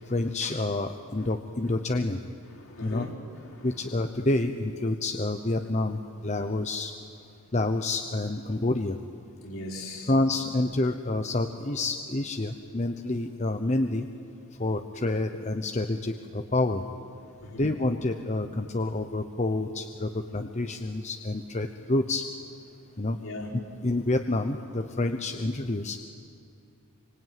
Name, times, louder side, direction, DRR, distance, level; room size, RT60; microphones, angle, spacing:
voice 1, 0.1-2.2 2.8-3.1 3.6-6.9 7.5-9.0 10.1-14.1 14.6-16.8 17.5-22.2 23.0-23.2 23.8-26.0, left 2 dB, 30° left, 6 dB, 0.8 m, -28 dB
voice 2, 2.5-3.1 3.4-3.7 9.4-10.1 17.4-17.7 23.2-23.5, left 2 dB, 65° left, 0 dB, 4.3 m, -39 dB
26.0 x 24.5 x 9.3 m, 2.4 s
head